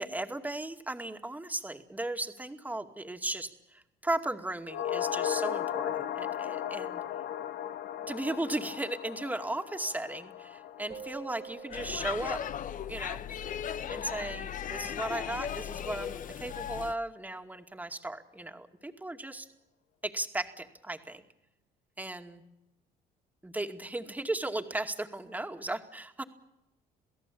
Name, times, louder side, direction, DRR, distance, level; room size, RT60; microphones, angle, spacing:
voice 1, 0.0-7.0 8.1-12.4 12.9-13.2 13.9-19.5 20.0-21.2 22.0-22.4 23.4-26.2, right 1 dB, 10° right, 6 dB, 2.3 m, -36 dB
sound 1, 4.7-13.1 13.4-13.5, left 10 dB, 75° left, 1.2 m, -37 dB
sound 2, 10.9-13.2, right 8 dB, 35° right, 1.6 m, -47 dB
Speech / Shout / Subway metro underground, 11.7-17.0, left 9 dB, 50° left, 1.0 m, -37 dB
28.0 x 17.0 x 8.6 m, 0.90 s
cardioid pair, 110°, 17 cm